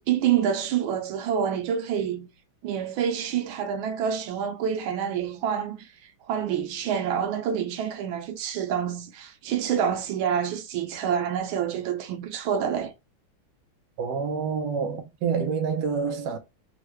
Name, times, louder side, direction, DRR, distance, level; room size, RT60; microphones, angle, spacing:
voice 1, 0.1-2.3 2.6-5.9 6.3-12.9, right 8 dB, 90° right, 1.4 m, -27 dB
voice 2, 14.0-16.4, right 5 dB, 70° right, 1.2 m, -27 dB
3.7 x 2.1 x 3.0 m
omnidirectional pair, 2.2 m